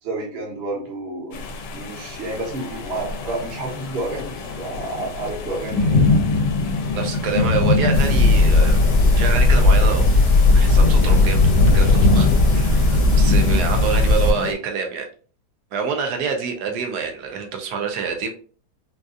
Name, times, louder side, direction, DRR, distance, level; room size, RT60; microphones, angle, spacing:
voice 1, 0.0-6.0, right 2 dB, 45° right, -3 dB, 1.0 m, -30 dB
sound 1, 1.3-14.5, left 3 dB, 80° left, 1.2 m, -23 dB
voice 2, 6.9-8.8 9.1-10.1 10.5-11.4 11.7-12.8 13.1-15.1 15.7-18.3, right 6 dB, 70° right, 4 dB, 1.2 m, -26 dB
sound 2, 7.9-14.3, left 2 dB, 40° left, 0.5 m, -16 dB
4.0 x 2.4 x 2.4 m, 0.42 s
omnidirectional pair, 1.9 m